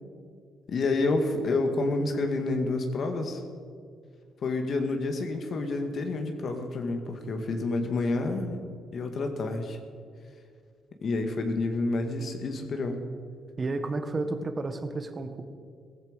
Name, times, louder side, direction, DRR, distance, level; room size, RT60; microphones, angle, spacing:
voice 1, 0.7-3.4 4.4-8.6 8.9-9.8 11.0-13.0, left 3 dB, 55° left, 5 dB, 1.9 m, -29 dB
voice 2, 13.6-15.4, right 3 dB, 35° right, 8 dB, 1.5 m, -31 dB
16.5 x 15.0 x 5.2 m, 2.2 s
cardioid pair, 90°, 0 cm